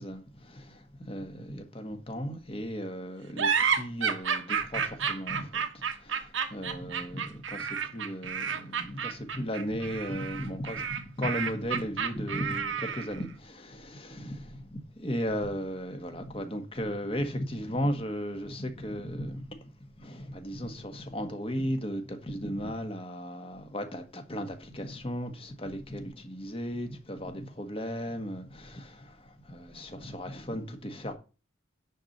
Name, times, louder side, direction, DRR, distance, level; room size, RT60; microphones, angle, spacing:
voice 1, 0.0-31.1, equal, 30° left, 1.6 m, -36 dB
sound 1, 3.4-13.2, right 6 dB, 70° right, 1.1 m, -31 dB
9.9 x 4.3 x 6.6 m
head